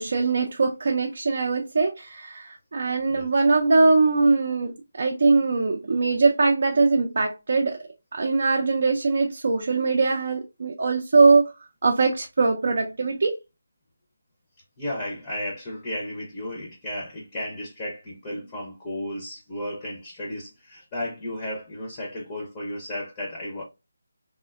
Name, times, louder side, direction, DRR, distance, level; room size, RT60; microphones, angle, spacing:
voice 1, 0.0-7.8 8.1-11.5 11.8-13.4, right 3 dB, 55° right, 0.4 m, -21 dB
voice 2, 14.8-23.6, left 1 dB, 20° left, 0.5 m, -34 dB
3.4 x 2.1 x 2.2 m
figure-of-eight pair, 165°, 0 cm